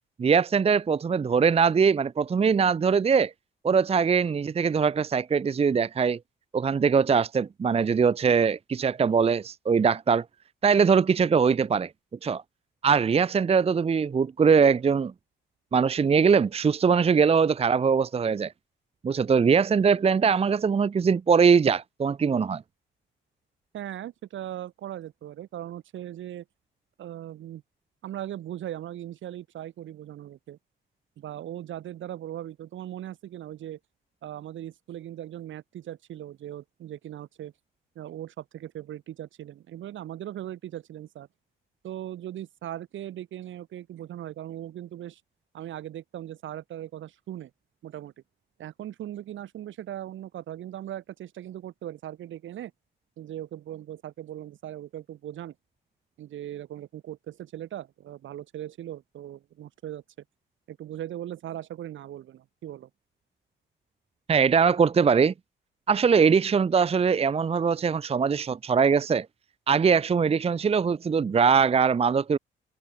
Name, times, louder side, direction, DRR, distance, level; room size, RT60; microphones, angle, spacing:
voice 1, 0.2-3.3 3.6-6.2 6.5-10.2 10.6-11.9 12.2-12.4 12.8-15.1 15.7-18.5 19.0-22.6 64.3-65.3 65.9-69.3 69.7-72.4, right 6 dB, 30° right, 0.7 m, -22 dB
voice 2, 23.7-26.5 27.0-27.6 28.0-30.6 31.2-33.8 34.2-37.5 38.0-41.3 41.8-45.2 45.5-47.5 47.8-48.1 48.6-52.7 53.2-55.6 56.2-60.0 60.7-62.9, right 12 dB, 75° right, 5.1 m, -39 dB
cardioid pair, 90°, 20 cm